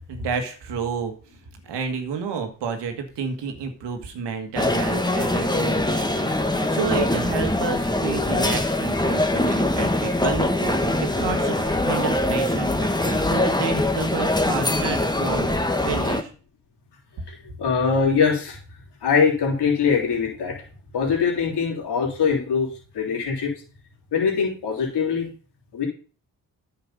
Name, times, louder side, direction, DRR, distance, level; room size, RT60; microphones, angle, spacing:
voice 1, 0.1-1.1 1.6-15.6 15.8-16.3, right 5 dB, 80° right, 5 dB, 1.8 m, -30 dB
sound 1, 4.6-16.2, left 1 dB, 10° left, 1.4 m, -23 dB
voice 2, 17.3-18.6 19.0-20.6 20.9-22.7 22.9-23.5 24.1-25.3 25.7-25.9, left 6 dB, 75° left, -2 dB, 3.5 m, -22 dB
9.7 x 5.8 x 5.3 m, 0.38 s
supercardioid pair, 45°, 41 cm